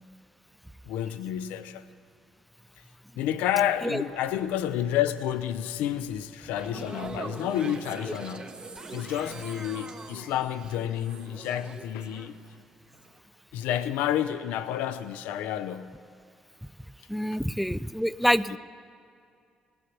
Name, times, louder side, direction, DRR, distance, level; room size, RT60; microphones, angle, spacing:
voice 1, 0.9-1.8 3.2-8.6 8.9-12.3 13.5-16.0 18.5-18.6, left 11 dB, 75° left, 0.5 m, -30 dB
sound 1, 6.4-12.6 12.9-13.2, right 3 dB, 35° right, 1.1 m, -43 dB
sound 2, 8.8-11.2, right 2 dB, 20° right, 1.5 m, -49 dB
voice 2, 17.1-18.6, equal, ahead, 0.3 m, -26 dB
18.0 x 6.9 x 7.1 m
hypercardioid pair, 50°, 3 cm